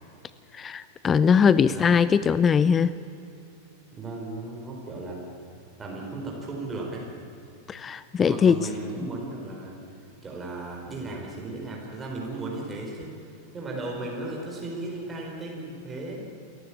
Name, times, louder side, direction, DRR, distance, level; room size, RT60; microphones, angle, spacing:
voice 1, 0.5-2.9 7.7-8.7, left 6 dB, 20° left, 17 dB, 0.5 m, -21 dB
voice 2, 1.7-2.1 4.0-5.2 5.8-7.1 8.3-9.8 10.2-13.1 13.5-16.3, right 2 dB, 15° right, -2 dB, 4.6 m, -35 dB
28.5 x 14.5 x 8.7 m, 2.7 s
figure-of-eight pair, 90°, 0 cm